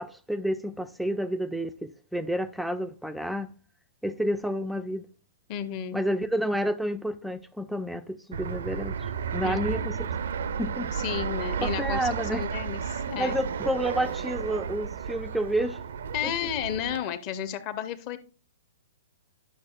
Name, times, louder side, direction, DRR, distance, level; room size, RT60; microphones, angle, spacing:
voice 1, 0.0-3.5 4.0-5.1 5.9-10.1 10.6-10.9 11.6-12.5 13.2-15.8 16.2-16.5, equal, ahead, 0.4 m, -30 dB
voice 2, 5.5-6.0 9.4-9.9 10.9-13.4 16.1-18.2, left 10 dB, 35° left, 0.7 m, -33 dB
Fixed-wing aircraft airplane, 8.3-17.0, right 7 dB, 60° right, 0.4 m, -32 dB
10.5 x 6.2 x 2.4 m
figure-of-eight pair, 115°, 0 cm